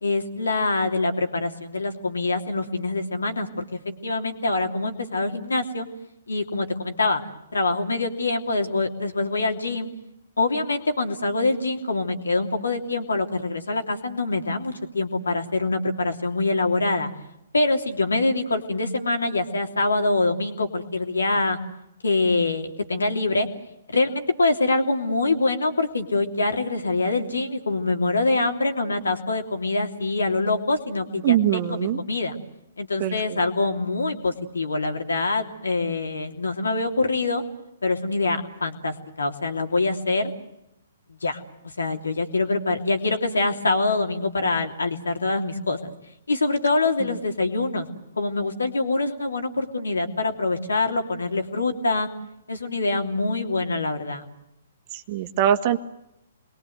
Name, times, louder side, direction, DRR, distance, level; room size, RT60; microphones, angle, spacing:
voice 1, 0.0-5.9 6.3-7.2 7.5-9.9 10.4-17.1 17.5-21.6 22.0-23.5 23.9-31.4 32.1-32.3 32.8-37.4 37.8-40.3 41.2-41.4 41.8-45.9 46.3-47.9 48.2-52.1 52.5-54.2, left 3 dB, 80° left, 4 dB, 3.1 m, -24 dB
voice 2, 31.2-32.0 33.0-33.4 47.0-47.1 54.9-55.8, right 11 dB, 40° right, 7 dB, 1.7 m, -23 dB
27.5 x 22.0 x 8.0 m, 0.83 s
figure-of-eight pair, 125°, 0 cm